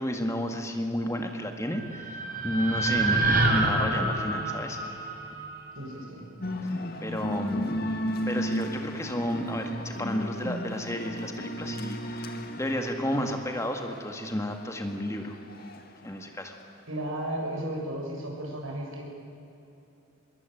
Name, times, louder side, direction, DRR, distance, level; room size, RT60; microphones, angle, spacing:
voice 1, 0.0-4.8 7.0-7.8 8.3-15.3 16.0-16.6, left 1 dB, 15° left, 4 dB, 1.8 m, -32 dB
sound 1, 1.6-5.8, right 2 dB, 45° right, 4.6 m, -27 dB
voice 2, 5.8-6.3 7.5-7.8 16.9-19.0, right 1 dB, 90° right, 0 dB, 7.1 m, -34 dB
sound 2, 6.4-15.9, equal, 45° left, 2.1 m, -35 dB
25.5 x 21.5 x 9.2 m, 2.8 s
head